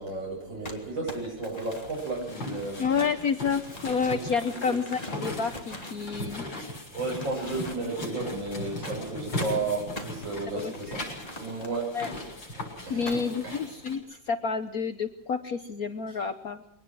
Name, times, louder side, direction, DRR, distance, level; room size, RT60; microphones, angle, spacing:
voice 1, 0.0-2.8 4.1-4.8 6.9-11.0 11.4-11.9 12.8-13.0 13.4-13.6, right 3 dB, 75° right, -2 dB, 7.4 m, -33 dB
Crumpling crinkling, 0.6-6.7 7.1-8.0 8.8-12.4 13.0-13.5, left 1 dB, 20° left, 2.8 m, -44 dB
sound 1, 1.7-14.0, left 1 dB, 75° left, 7.6 m, -38 dB
voice 2, 2.8-6.4 10.5-10.7 11.9-12.1 12.9-16.6, left 5 dB, 55° left, 9 dB, 1.3 m, -29 dB
22.5 x 19.0 x 6.2 m, 0.74 s
omnidirectional pair, 2.1 m